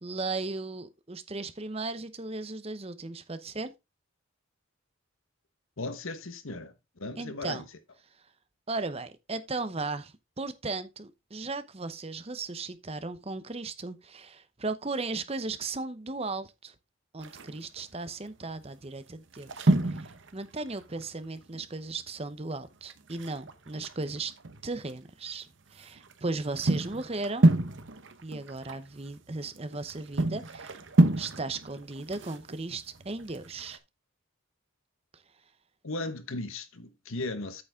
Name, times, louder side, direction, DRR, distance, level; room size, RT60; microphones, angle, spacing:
voice 1, 0.0-3.7 7.2-7.6 8.7-16.7 17.1-24.3 24.6-27.5 28.2-30.8 31.2-33.8 35.1-35.2, right 3 dB, 30° right, 0.8 m, -36 dB
voice 2, 5.8-7.6 35.8-37.6, left 2 dB, 75° left, 1.2 m, -36 dB
sound 1, 17.2-17.8 18.5-18.7 19.0-21.6 21.9-22.0 22.3-22.4 22.9-25.0 25.4-33.8, right 2 dB, 60° right, 1.0 m, -29 dB
8.7 x 6.9 x 3.7 m
head